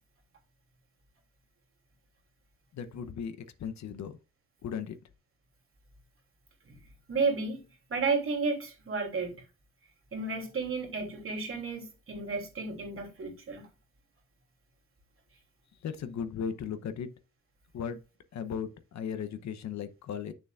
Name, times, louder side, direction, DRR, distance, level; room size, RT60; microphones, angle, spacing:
voice 1, 2.7-4.2 4.6-5.0 15.8-17.1 17.7-18.0 18.3-20.3, left 7 dB, 60° left, 0.9 m, -36 dB
voice 2, 7.1-7.6 7.9-9.4 10.1-13.7, right 4 dB, 45° right, 3.1 m, -32 dB
8.6 x 6.9 x 2.5 m
cardioid pair, 90°, 31 cm